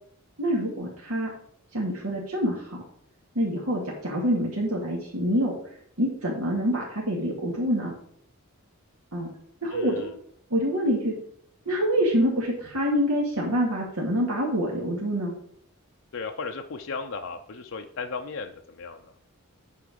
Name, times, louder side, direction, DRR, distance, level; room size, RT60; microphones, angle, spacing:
voice 1, 0.4-1.3 1.7-2.8 3.3-5.5 6.0-7.9 9.1-9.3 9.6-10.1 10.5-11.1 11.7-15.3, equal, 85° right, -2 dB, 2.3 m, -26 dB
voice 2, 9.7-10.1 16.1-19.2, left 4 dB, 60° left, 4 dB, 0.6 m, -36 dB
8.5 x 4.7 x 6.2 m, 0.64 s
head